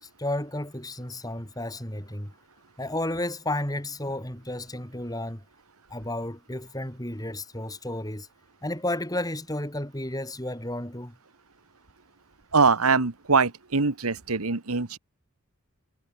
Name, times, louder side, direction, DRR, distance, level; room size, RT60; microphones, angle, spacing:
voice 1, 0.0-2.3 2.8-5.4 5.9-8.3 8.6-11.2, left 1 dB, 15° left, 5.3 m, -32 dB
voice 2, 12.5-15.0, right 4 dB, 85° right, 1.5 m, -23 dB
head